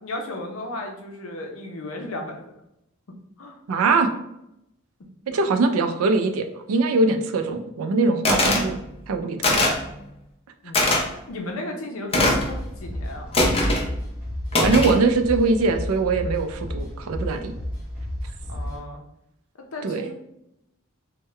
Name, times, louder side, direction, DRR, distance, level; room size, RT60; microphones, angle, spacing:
voice 1, 0.0-2.4 3.4-3.6 5.3-5.5 10.6-13.3 18.5-19.0 19.7-20.1, left 2 dB, 70° left, 2 dB, 0.6 m, -35 dB
voice 2, 3.7-4.1 5.3-8.8 9.1-9.7 14.6-17.5 19.8-20.1, right 3 dB, 85° right, 8 dB, 0.4 m, -22 dB
sound 1, 8.3-8.7 9.4-9.8 10.7-11.0 12.1-12.5 13.3-13.9 14.5-15.0, left 1 dB, 30° left, 0.5 m, -20 dB
sound 2, 12.5-18.8, left 1 dB, 5° right, 1.2 m, -32 dB
3.5 x 2.1 x 3.1 m, 0.83 s
head